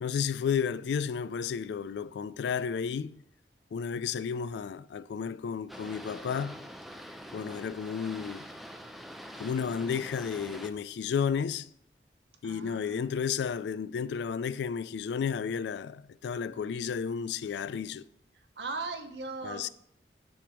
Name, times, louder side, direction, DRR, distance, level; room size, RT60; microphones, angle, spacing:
voice 1, 0.0-3.2 3.7-6.6 7.3-8.4 9.4-11.7 12.4-18.1 19.4-19.7, left 6 dB, 70° left, 0.3 m, -32 dB
Boat Water vehicle, 5.7-10.7, equal, ahead, 0.5 m, -45 dB
voice 2, 12.4-13.1 18.3-19.7, right 3 dB, 70° right, 0.9 m, -39 dB
8.7 x 3.4 x 6.1 m
head